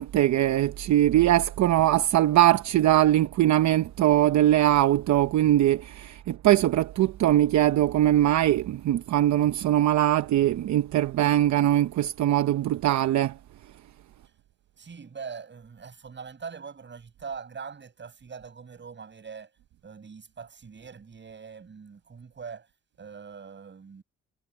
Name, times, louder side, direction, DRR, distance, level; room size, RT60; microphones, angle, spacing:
voice 1, 0.0-13.4, right 13 dB, 70° right, 0.8 m, -21 dB
voice 2, 14.8-19.5 19.8-22.7 23.0-24.0, right 6 dB, 40° right, 6.8 m, -42 dB
cardioid pair, 90°, 30 cm